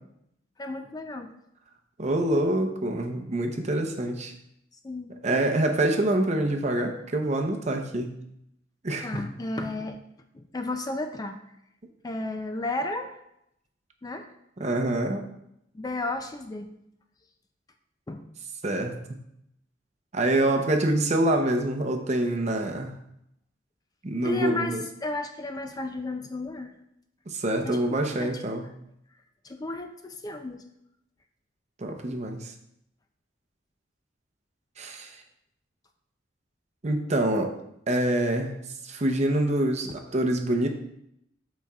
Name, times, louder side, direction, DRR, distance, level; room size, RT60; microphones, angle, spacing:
voice 1, 0.6-1.3 4.8-5.1 9.0-10.0 10.3-11.4 12.0-13.2 14.0-14.3 15.7-16.7 18.1-18.3 24.2-26.7 27.6-28.4 29.4-30.6, left 2 dB, 20° left, 6 dB, 0.3 m, -33 dB
voice 2, 2.0-4.3 5.2-8.2 8.8-9.2 14.6-15.3 18.6-19.2 20.1-23.0 24.0-24.8 27.3-28.7 31.8-32.5 34.8-35.2 36.8-37.5 37.9-38.5 38.8-40.7, right 1 dB, 35° right, 4 dB, 0.7 m, -26 dB
12.0 x 4.1 x 2.3 m, 0.79 s
head